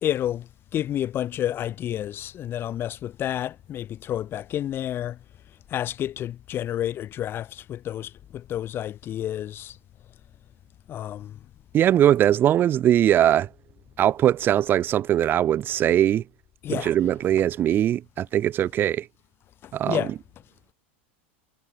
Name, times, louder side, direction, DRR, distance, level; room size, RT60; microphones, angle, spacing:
voice 1, 0.0-5.2 5.7-9.8 10.9-11.4 16.6-16.9 19.6-20.1, left 11 dB, 35° left, 2.0 m, -30 dB
voice 2, 11.7-13.5 14.0-16.2 16.7-19.1 19.7-20.0, right 11 dB, 35° right, 0.6 m, -21 dB
hypercardioid pair, 110°, 6 cm